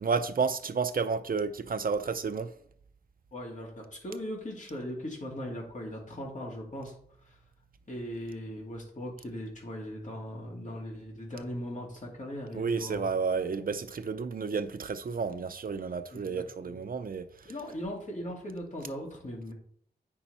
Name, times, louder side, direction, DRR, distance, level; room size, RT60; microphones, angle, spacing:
voice 1, 0.0-2.5 12.5-17.2, right 5 dB, 60° right, 0.6 m, -31 dB
voice 2, 3.3-6.9 7.9-13.1 16.1-16.8 17.4-19.5, equal, 45° left, 2.4 m, -39 dB
8.9 x 5.8 x 4.2 m
wide cardioid pair, 115°, 17 cm